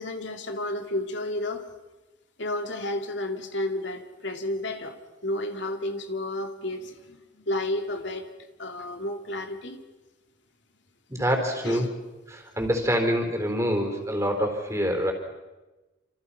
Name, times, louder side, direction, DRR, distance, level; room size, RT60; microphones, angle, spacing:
voice 1, 0.0-1.7 2.4-8.3 8.6-9.8 11.6-11.9, left 1 dB, 65° left, 5 dB, 2.4 m, -31 dB
voice 2, 11.1-11.9 12.3-15.1, equal, 15° right, 3 dB, 4.2 m, -26 dB
28.5 x 27.5 x 5.8 m, 1.1 s
head